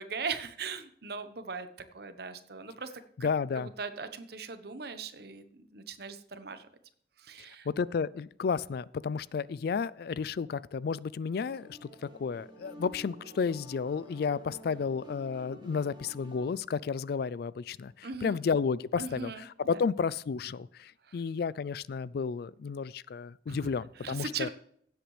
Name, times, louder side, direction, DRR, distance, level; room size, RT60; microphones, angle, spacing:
voice 1, 0.0-1.7 1.9-2.9 3.5-5.5 5.7-6.7 7.2-7.7 18.0-18.4 19.0-19.5 19.7-19.8 21.1-21.2 23.5-23.6 24.0-24.5, right 5 dB, 60° right, 10 dB, 1.0 m, -39 dB
voice 2, 3.2-3.7 7.7-11.8 12.2-24.5, left 5 dB, 60° left, 21 dB, 0.3 m, -32 dB
sound 1, 11.5-16.5, equal, 25° right, 1.6 m, -50 dB
16.0 x 8.2 x 3.2 m, 0.67 s
head